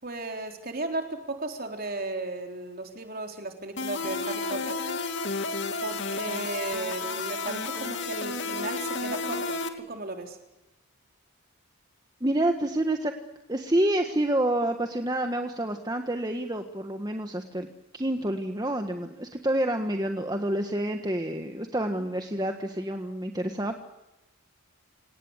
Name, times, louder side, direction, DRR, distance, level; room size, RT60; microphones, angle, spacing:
voice 1, 0.0-4.8 5.8-10.4 21.9-22.1, right 2 dB, 40° right, 4 dB, 4.0 m, -35 dB
sound 1, 3.8-9.7, left 3 dB, 55° left, 2.6 m, -31 dB
voice 2, 12.2-13.1 13.5-17.7 17.9-23.8, right 1 dB, 15° right, 5 dB, 1.5 m, -28 dB
27.5 x 19.0 x 8.1 m, 0.94 s
head